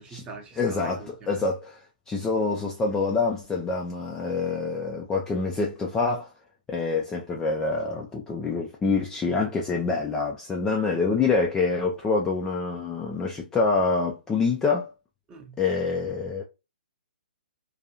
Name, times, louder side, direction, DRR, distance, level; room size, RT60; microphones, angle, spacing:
voice 1, 0.0-1.3 15.3-15.6, right 4 dB, 20° right, 0.7 m, -43 dB
voice 2, 0.6-1.8 2.1-6.3 6.7-14.9 15.6-16.4, left 4 dB, 10° left, 0.3 m, -26 dB
2.5 x 2.3 x 2.8 m
figure-of-eight pair, 125°, 5 cm